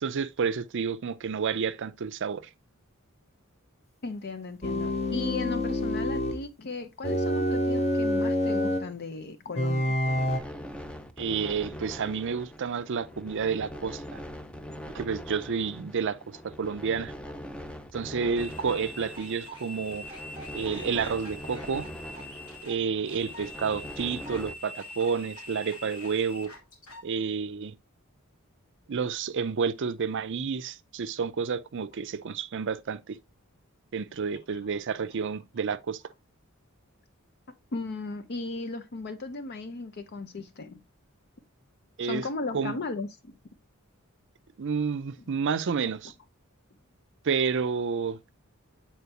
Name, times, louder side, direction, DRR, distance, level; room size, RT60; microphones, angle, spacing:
voice 1, 0.0-2.4 11.2-14.2 14.9-16.2 16.4-17.1 17.9-20.0 20.5-21.9 22.6-26.5 27.0-27.8 28.9-33.2 33.9-36.0 42.0-42.2 42.5-42.7 44.6-46.1 47.2-48.2, right 6 dB, 60° right, 0.5 m, -30 dB
voice 2, 4.0-10.0 34.7-34.8 37.7-40.8 42.0-43.3, left 3 dB, 50° left, 0.6 m, -36 dB
sound 1, 4.6-6.4 7.0-8.9 9.6-10.4, left 1 dB, 30° left, 0.9 m, -27 dB
sound 2, 10.0-24.5, equal, 5° left, 0.5 m, -42 dB
sound 3, 18.4-27.0, left 1 dB, 80° left, 2.9 m, -44 dB
8.2 x 4.4 x 2.8 m
head